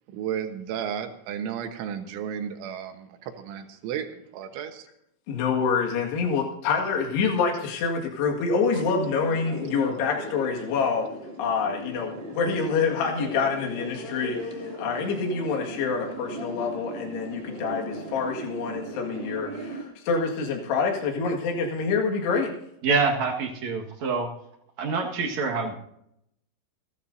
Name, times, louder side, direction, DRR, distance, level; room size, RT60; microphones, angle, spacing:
voice 1, 0.1-4.9, right 8 dB, 85° right, 6 dB, 3.7 m, -33 dB
voice 2, 5.3-11.1 11.4-22.5, left 5 dB, 65° left, 0 dB, 3.9 m, -26 dB
sound 1, 8.7-19.8, right 1 dB, 25° right, 1.5 m, -38 dB
voice 3, 22.8-24.3 24.8-25.7, right 4 dB, 55° right, 1 dB, 2.1 m, -26 dB
30.0 x 11.5 x 2.7 m, 0.76 s
omnidirectional pair, 5.4 m